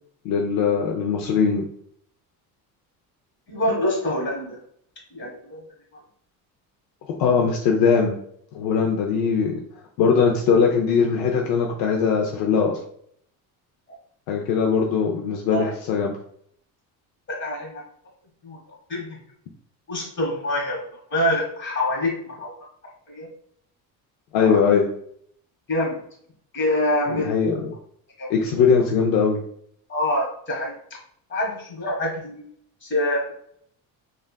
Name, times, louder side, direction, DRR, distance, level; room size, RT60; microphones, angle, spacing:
voice 1, 0.2-1.6 7.2-8.2 8.5-9.6 10.0-12.8 14.3-16.1 24.3-24.9 27.1-27.7 28.3-29.4, left 6 dB, 70° left, 1 dB, 0.5 m, -20 dB
voice 2, 3.5-4.6 5.1-5.6 15.5-15.7 17.3-17.8 18.4-19.2 19.9-20.8 21.1-22.5 23.1-23.3 24.4-24.6 25.7-26.0 26.5-27.3 28.2-28.3 29.9-30.8 31.3-32.5 32.8-33.3, left 1 dB, 30° left, -2 dB, 1.4 m, -25 dB
3.3 x 2.4 x 2.2 m, 0.65 s
cardioid pair, 120°, 38 cm